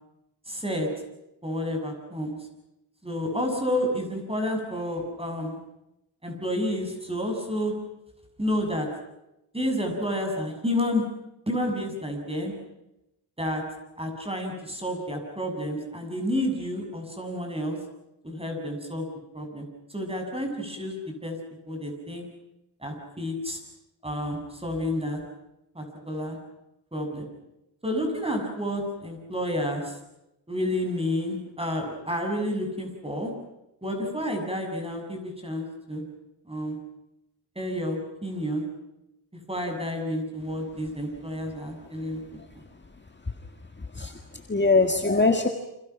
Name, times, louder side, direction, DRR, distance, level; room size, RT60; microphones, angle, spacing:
voice 1, 0.5-0.9 1.4-2.3 3.0-5.6 6.2-7.8 8.4-8.9 9.5-11.1 11.5-12.5 13.4-13.6 14.0-17.8 18.2-19.1 19.3-21.4 21.7-22.2 22.8-23.6 24.0-25.2 25.7-26.4 26.9-27.3 27.8-30.0 30.5-33.3 33.8-36.0 36.5-36.8 37.6-38.7 39.5-42.4, left 1 dB, 15° right, 3 dB, 7.4 m, -30 dB
voice 2, 43.8-45.5, left 3 dB, 25° left, 5 dB, 1.9 m, -23 dB
29.5 x 26.5 x 6.0 m, 0.88 s
wide cardioid pair, 90°, 43 cm